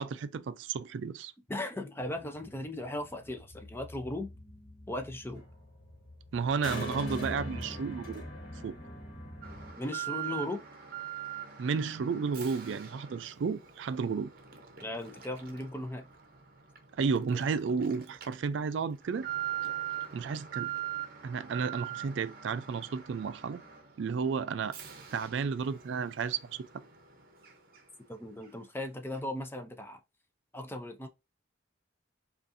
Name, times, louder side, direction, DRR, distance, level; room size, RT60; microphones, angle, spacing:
voice 1, 0.0-1.3 6.3-8.2 8.6-8.8 11.6-14.3 17.0-19.3 20.1-20.7 21.2-23.6 24.0-24.8 25.1-26.7, right 5 dB, 70° right, 0.3 m, -32 dB
voice 2, 1.5-4.3 4.9-5.4 9.8-10.6 14.8-16.0 28.1-30.0 30.5-31.1, left 1 dB, 10° left, 0.5 m, -37 dB
sound 1, 2.1-9.7, equal, 50° left, 1.4 m, -43 dB
Alarm, 9.4-28.1 28.4-28.5 29.1-29.2, right 11 dB, 50° right, 0.8 m, -42 dB
5.2 x 2.5 x 2.6 m
head